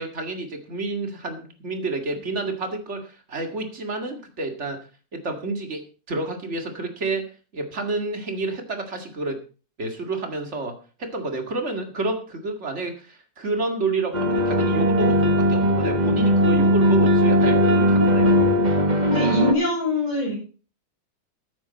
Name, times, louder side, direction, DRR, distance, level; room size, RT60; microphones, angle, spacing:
voice 1, 0.0-4.8 5.1-5.8 6.1-7.2 7.5-9.4 9.8-18.4, right 3 dB, 45° right, 5 dB, 2.4 m, -29 dB
sound 1, 14.1-19.5, equal, 30° right, 1.2 m, -19 dB
voice 2, 19.1-20.3, left 1 dB, 65° left, -6 dB, 5.6 m, -23 dB
14.0 x 9.4 x 4.2 m, 0.37 s
omnidirectional pair, 1.6 m